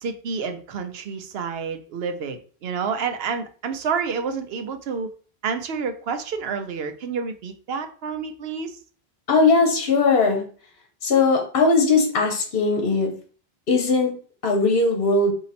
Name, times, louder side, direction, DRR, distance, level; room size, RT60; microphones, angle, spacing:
voice 1, 0.0-5.1 5.4-8.8, right 5 dB, 75° right, 7 dB, 0.9 m, -29 dB
voice 2, 9.3-10.4 11.0-13.1 13.7-14.1 14.4-15.3, left 3 dB, 65° left, 2 dB, 1.2 m, -19 dB
4.1 x 2.9 x 4.1 m, 0.41 s
omnidirectional pair, 1.1 m